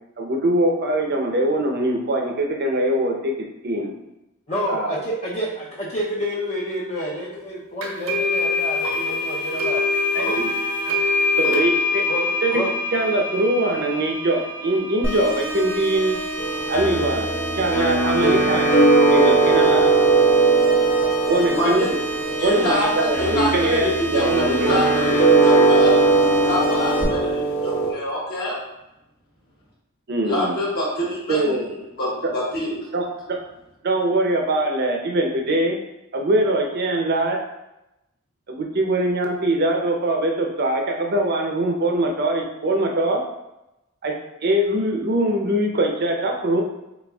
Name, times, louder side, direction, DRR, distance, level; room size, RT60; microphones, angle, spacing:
voice 1, 0.2-3.3 3.6-3.9 4.7-5.0 10.1-10.5 10.8-12.0 12.4-12.6 12.9-16.2 16.7-18.7 19.1-19.9 21.3-21.9 22.4-24.8 30.1-30.5 31.3-31.6 32.9-33.4 33.8-35.8 36.1-37.4 38.5-43.2 44.0-46.6, right 1 dB, 50° right, 2 dB, 0.6 m, -22 dB
voice 2, 4.5-9.8 10.2-10.4 12.1-12.2 12.5-12.7, equal, 30° left, -7 dB, 0.6 m, -28 dB
sound 1, 7.8-16.7, left 3 dB, 85° right, 0.8 m, -25 dB
sound 2, 15.0-27.0, equal, 10° left, 0.9 m, -29 dB
sound 3, 16.4-27.9, right 3 dB, 75° left, 1.1 m, -19 dB
voice 3, 21.5-21.9 22.3-28.6 30.3-32.9, left 1 dB, 45° left, -5 dB, 1.3 m, -26 dB
4.1 x 3.9 x 2.3 m, 0.91 s
head